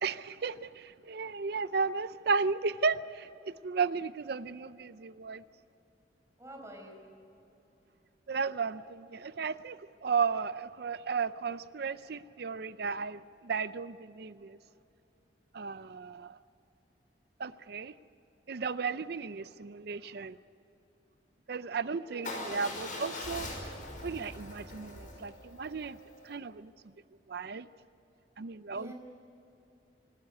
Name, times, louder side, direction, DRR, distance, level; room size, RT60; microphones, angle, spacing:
voice 1, 0.0-5.4 8.3-14.6 15.5-16.4 17.4-17.9 18.5-20.4 21.5-23.5 24.0-26.0 26.2-26.7 27.3-27.7 28.4-28.9, right 5 dB, 60° right, 0.5 m, -34 dB
voice 2, 6.4-7.0 21.9-22.6 28.7-28.9, equal, 15° right, 4.7 m, -48 dB
Motorcycle / Engine starting / Idling, 22.2-26.3, left 2 dB, 45° left, 5.5 m, -42 dB
26.0 x 13.0 x 9.6 m
head